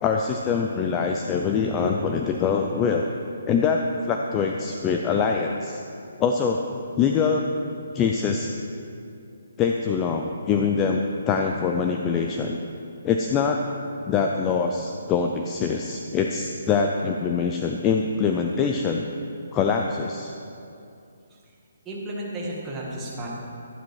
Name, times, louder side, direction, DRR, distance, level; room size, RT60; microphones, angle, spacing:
voice 1, 0.0-3.1 3.5-3.8 4.1-5.8 6.2-7.4 7.9-8.5 9.6-12.6 13.0-13.6 14.1-19.1 19.5-20.3, left 5 dB, 15° left, 2 dB, 0.4 m, -24 dB
voice 2, 21.8-23.3, right 1 dB, 10° right, -5 dB, 1.5 m, -33 dB
12.0 x 11.5 x 4.8 m, 2.6 s
hypercardioid pair, 175°, 0 cm